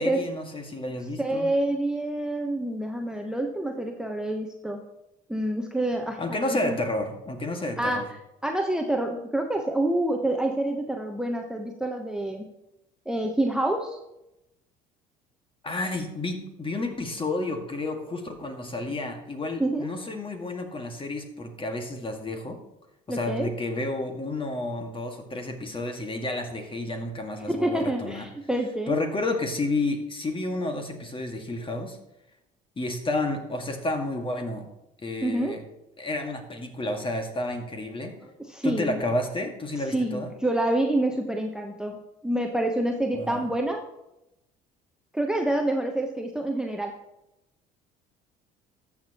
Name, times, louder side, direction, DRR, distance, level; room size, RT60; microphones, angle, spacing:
voice 1, 0.0-1.5 6.2-8.0 15.6-22.6 23.1-28.3 28.9-32.0 32.8-34.7 35.0-35.6 36.0-38.1 38.6-40.3 43.1-43.5, left 2 dB, 25° left, 4 dB, 1.9 m, -31 dB
voice 2, 1.2-4.8 5.3-6.8 7.8-8.0 8.4-12.5 13.1-14.0 19.6-19.9 23.1-23.5 27.5-29.0 35.2-35.6 38.5-39.0 39.9-43.8 45.1-46.9, right 1 dB, 5° right, 3 dB, 1.0 m, -27 dB
13.5 x 7.2 x 3.0 m, 0.89 s
hypercardioid pair, 65°, 20 cm